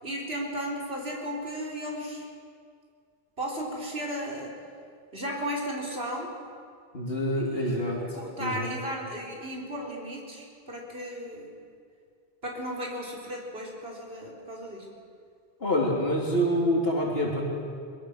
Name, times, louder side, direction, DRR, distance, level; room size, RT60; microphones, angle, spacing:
voice 1, 0.0-2.3 3.4-4.5 5.1-6.3 7.5-11.5 12.4-14.9, equal, 75° right, -2 dB, 4.1 m, -35 dB
voice 2, 6.9-8.0 8.4-8.7 15.6-17.4, equal, 70° left, -2 dB, 3.5 m, -26 dB
24.5 x 23.0 x 6.6 m, 2.2 s
omnidirectional pair, 1.0 m